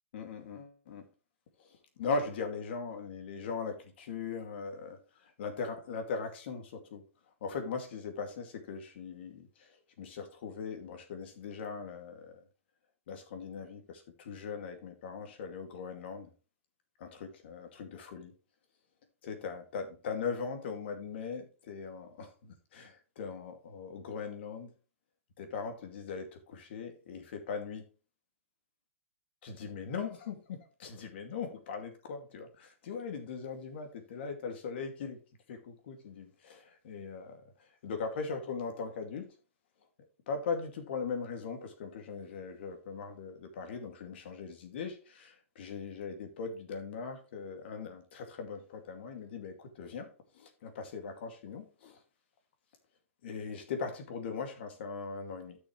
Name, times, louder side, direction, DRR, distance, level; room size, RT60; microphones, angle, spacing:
voice 1, 0.1-1.1 2.0-7.0 7.4-12.4 13.1-16.3 17.0-18.3 19.2-24.7 25.4-27.9 29.4-35.2 35.5-37.4 37.8-39.3 40.3-50.1 50.3-52.0 53.2-55.6, left 5 dB, 50° left, 2.4 m, -40 dB
13.0 x 6.3 x 3.2 m
hypercardioid pair, 155°, 7 cm